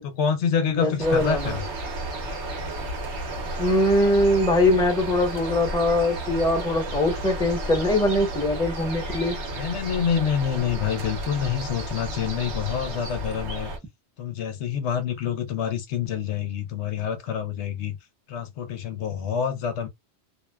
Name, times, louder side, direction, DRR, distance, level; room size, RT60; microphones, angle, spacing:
voice 1, 0.0-1.6 9.5-13.7 14.2-18.0 18.3-19.9, left 8 dB, 80° left, 0.9 m, -27 dB
voice 2, 0.7-1.6 3.6-9.4, left 1 dB, 5° left, 0.8 m, -22 dB
sound 1, 1.0-13.8, right 1 dB, 75° right, 1.1 m, -32 dB
2.6 x 2.2 x 2.2 m
omnidirectional pair, 1.2 m